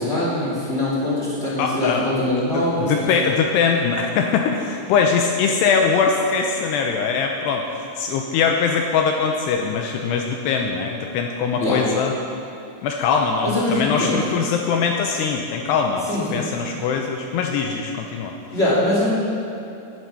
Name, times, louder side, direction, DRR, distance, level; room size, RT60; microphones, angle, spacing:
voice 1, 0.0-3.1 11.6-11.8 13.4-14.2 16.1-16.4 18.5-19.1, left 1 dB, 20° left, -7 dB, 1.8 m, -22 dB
voice 2, 1.6-2.1 2.5-12.1 12.8-18.3, left 5 dB, 85° left, 2 dB, 2.4 m, -22 dB
11.0 x 10.5 x 5.5 m, 2.7 s
omnidirectional pair, 5.5 m